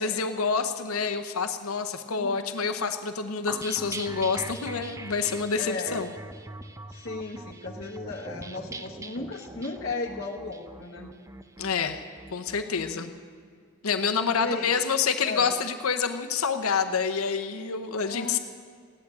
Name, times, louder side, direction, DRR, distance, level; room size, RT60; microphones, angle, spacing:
voice 1, 0.0-6.1 11.6-12.0 12.3-13.1 13.8-18.4, left 5 dB, 90° left, 6 dB, 0.8 m, -27 dB
voice 2, 2.1-2.4 5.6-6.1 6.9-11.1 12.7-13.2 14.4-14.7 15.2-15.5 18.0-18.4, left 2 dB, 50° left, -5 dB, 1.2 m, -35 dB
sound 1, 3.5-12.9, right 2 dB, 15° right, 0.5 m, -42 dB
15.5 x 11.5 x 7.6 m, 2.1 s
head